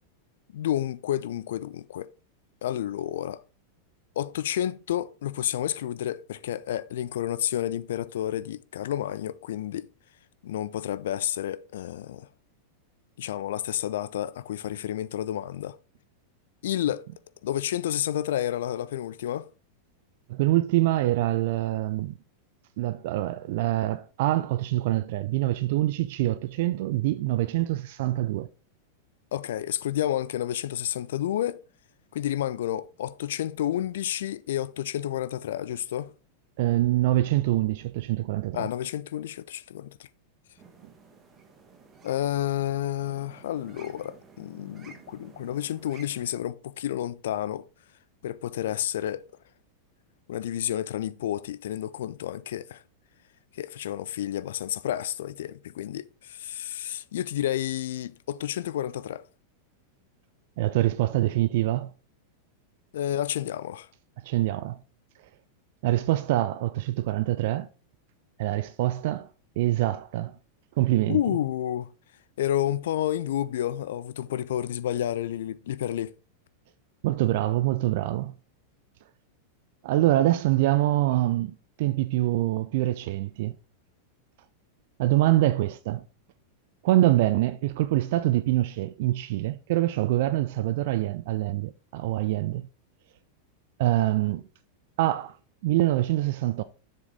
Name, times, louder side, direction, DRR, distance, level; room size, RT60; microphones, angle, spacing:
voice 1, 0.5-2.1 2.6-3.4 4.2-9.9 10.4-12.3 13.2-15.8 16.6-17.1 17.4-19.5 29.3-31.6 32.1-36.1 38.5-40.1 42.0-47.7 48.2-49.2 50.3-52.8 53.5-59.3 62.9-63.9 71.1-71.9 72.4-76.1, left 11 dB, 60° left, 0.3 m, -30 dB
voice 2, 20.3-22.1 22.8-28.5 36.6-38.7 60.6-61.9 64.2-64.8 65.8-67.7 68.4-69.3 69.6-70.4 70.8-71.2 77.0-78.4 79.8-83.6 85.0-86.0 86.8-92.7 93.8-94.4 95.0-95.4 95.6-96.6, right 15 dB, 50° right, 0.4 m, -25 dB
sound 1, 40.6-46.3, right 5 dB, 25° right, 1.8 m, -52 dB
7.6 x 7.1 x 3.6 m
figure-of-eight pair, 90°, 0 cm